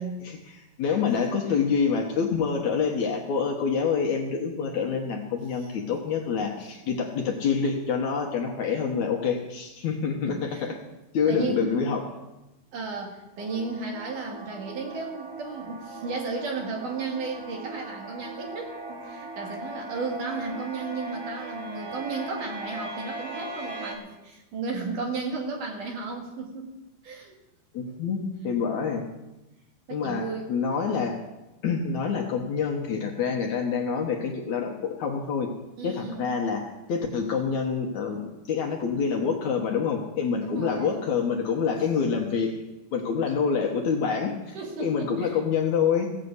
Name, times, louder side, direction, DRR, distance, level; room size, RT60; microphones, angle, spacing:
voice 1, 0.2-10.7 11.1-12.1 27.7-29.0 29.9-31.2 31.6-35.5 35.8-42.5 42.9-46.1, left 6 dB, 60° left, 1 dB, 2.2 m, -27 dB
voice 2, 10.3-10.8 11.3-11.7 12.7-26.7 27.0-27.3 28.7-28.9 29.9-30.5 35.8-36.4 40.4-41.0 44.5-45.3, right 4 dB, 65° right, 0 dB, 3.5 m, -34 dB
sound 1, 13.4-23.9, right 2 dB, 45° right, 1.2 m, -39 dB
16.5 x 6.7 x 8.2 m, 0.99 s
omnidirectional pair, 4.2 m